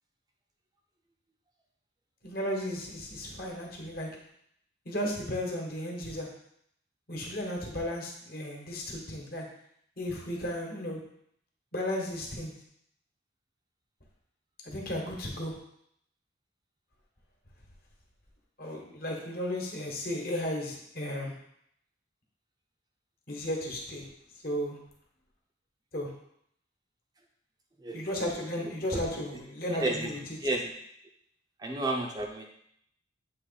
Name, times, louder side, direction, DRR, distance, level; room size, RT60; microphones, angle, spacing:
voice 1, 2.2-4.1 4.8-6.3 7.1-9.4 10.0-11.0 11.7-12.5 14.6-15.5 18.6-21.3 23.3-24.1 24.4-24.8 25.9-26.1 27.9-30.4, left 1 dB, 50° left, 0 dB, 1.3 m, -34 dB
voice 2, 31.6-32.4, right 2 dB, 20° right, 1 dB, 0.5 m, -30 dB
7.6 x 3.0 x 4.0 m, 0.71 s
head